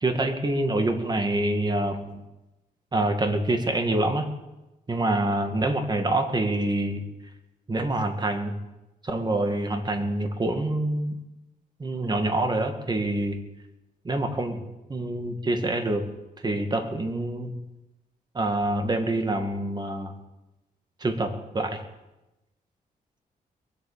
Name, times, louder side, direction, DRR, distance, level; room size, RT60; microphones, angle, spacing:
voice 1, 0.0-2.2 2.9-4.3 4.9-7.1 7.7-8.6 9.0-11.2 11.8-13.4 14.0-14.6 14.9-16.1 16.4-17.5 18.3-20.1 21.0-21.8, right 2 dB, 25° right, 6 dB, 2.2 m, -26 dB
22.5 x 8.5 x 7.5 m, 0.99 s
cardioid pair, 100°, 16 cm